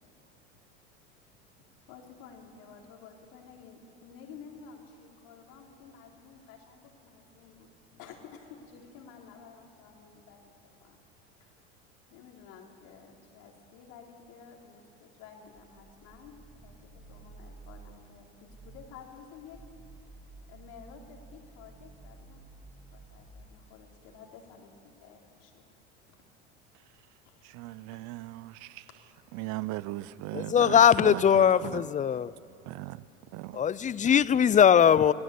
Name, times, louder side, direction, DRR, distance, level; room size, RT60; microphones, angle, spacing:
voice 1, 1.9-10.5 10.8-11.0 11.4-11.7 12.1-19.6 20.5-22.4 22.9-25.7 27.2-27.4 27.9-28.0, left 6 dB, 60° left, 3.7 m, -52 dB
sound 1, 15.5-18.1 18.5-19.0 19.4-23.7, right 3 dB, 5° right, 2.1 m, -52 dB
voice 2, 27.4-28.9 29.3-31.9 32.6-33.0 33.3-33.6, right 18 dB, 55° right, 0.7 m, -38 dB
voice 3, 30.3-32.3 33.5-35.1, left 8 dB, 20° left, 0.5 m, -21 dB
25.0 x 16.0 x 8.4 m
hypercardioid pair, 85°, 34 cm